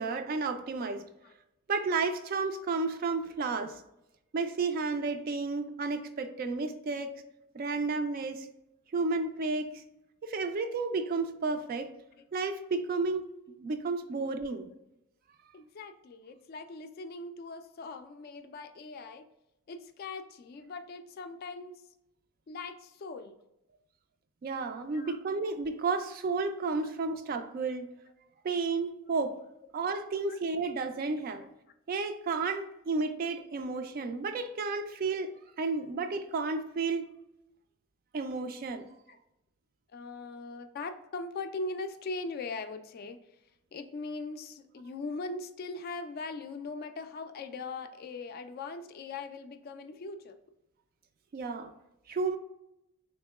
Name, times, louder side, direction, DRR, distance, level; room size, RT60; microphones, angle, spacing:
voice 1, 0.0-1.0 1.7-3.8 4.3-7.1 7.5-8.5 8.9-9.7 10.2-11.9 12.3-13.3 13.6-14.7 24.4-27.9 28.4-29.4 29.7-31.4 31.9-35.3 35.6-37.1 38.1-38.8 51.3-51.7 52.1-52.4, right 4 dB, 45° right, 8 dB, 0.3 m, -32 dB
voice 2, 15.5-19.3 19.7-21.8 22.5-23.4 24.9-25.2 26.8-27.2 30.3-30.4 34.1-34.2 39.1-39.2 39.9-43.2 43.7-50.4, left 3 dB, 45° left, 8 dB, 0.3 m, -40 dB
3.5 x 3.0 x 2.2 m, 0.87 s
head